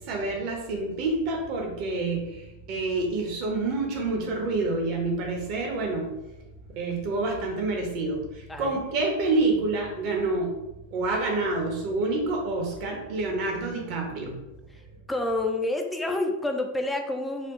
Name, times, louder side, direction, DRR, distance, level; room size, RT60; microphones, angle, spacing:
voice 1, 0.1-6.1 6.7-10.5 10.9-14.4, right 2 dB, 45° right, 1 dB, 0.9 m, -28 dB
voice 2, 8.5-8.8 15.1-17.5, left 2 dB, 5° left, 3 dB, 0.4 m, -28 dB
4.2 x 2.3 x 3.0 m, 0.97 s
figure-of-eight pair, 90°, 0 cm